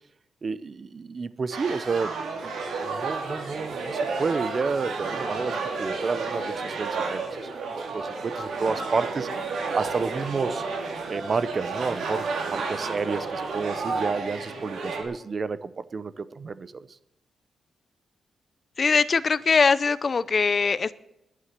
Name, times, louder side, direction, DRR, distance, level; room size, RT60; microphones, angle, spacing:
voice 1, 0.4-2.1 2.4-2.5 2.8-10.6 11.1-17.0, right 4 dB, 40° right, 16 dB, 0.7 m, -30 dB
sound 1, 1.5-15.0, right 4 dB, 90° right, 3.6 m, -31 dB
voice 2, 18.8-20.9, left 5 dB, 40° left, 16 dB, 0.6 m, -21 dB
11.0 x 9.7 x 9.0 m, 0.85 s
wide cardioid pair, 130°, 0 cm